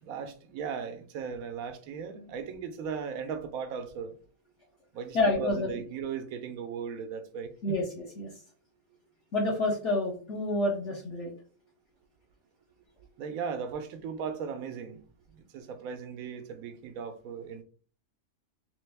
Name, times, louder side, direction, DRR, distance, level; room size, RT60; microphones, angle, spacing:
voice 1, 0.0-4.2 4.9-7.8 13.2-15.0 15.3-17.6, right 6 dB, 90° right, 1.1 m, -37 dB
voice 2, 5.1-5.8 7.6-8.3 9.3-11.3, left 2 dB, 60° left, 1.0 m, -28 dB
3.4 x 3.0 x 3.3 m
omnidirectional pair, 1.4 m